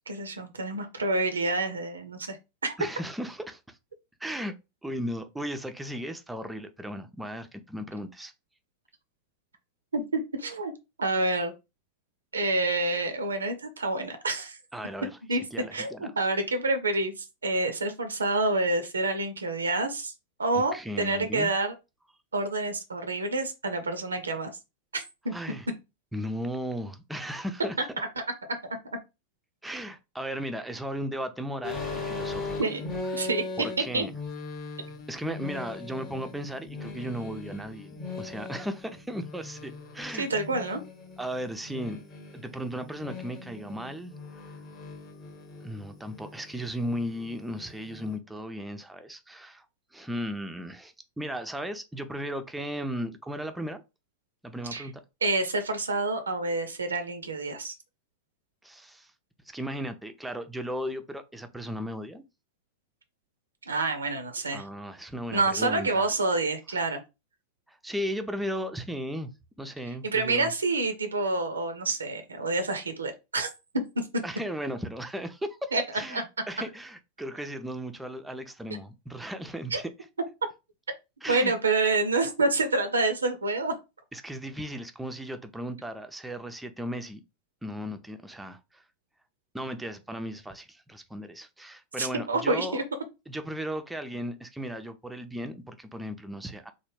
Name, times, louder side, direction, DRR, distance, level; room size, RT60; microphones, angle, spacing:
voice 1, 0.1-2.4 2.6-2.8 9.9-10.7 11.0-11.5 12.3-14.6 15.3-15.4 15.7-20.1 20.4-21.7 22.3-24.5 24.9-25.3 28.0-28.2 32.6-32.8 33.1-33.4 33.9-34.0 40.2-40.8 54.7-54.9 55.2-57.7 63.7-64.6 65.3-67.0 70.0-73.5 75.7-75.8 76.1-76.2 79.7-79.8 81.3-83.7 92.0-92.8, right 2 dB, 75° right, 0.4 m, -28 dB
voice 2, 2.8-3.8 4.2-8.3 14.7-15.1 15.5-16.1 20.5-21.5 25.3-25.7 26.1-27.8 29.6-32.5 33.0-33.3 33.6-34.1 35.1-40.3 41.2-42.0 42.3-44.1 45.6-49.7 49.9-53.8 54.4-55.0 58.6-59.1 59.5-62.2 64.5-66.1 67.7-69.3 69.6-70.5 74.2-79.9 81.2-81.5 84.1-87.2 87.6-88.8 89.5-92.8 93.3-96.7, equal, 5° right, 0.4 m, -36 dB
sound 1, 31.6-48.2, left 3 dB, 30° left, 0.9 m, -40 dB
3.1 x 2.1 x 3.1 m
figure-of-eight pair, 90°, 0 cm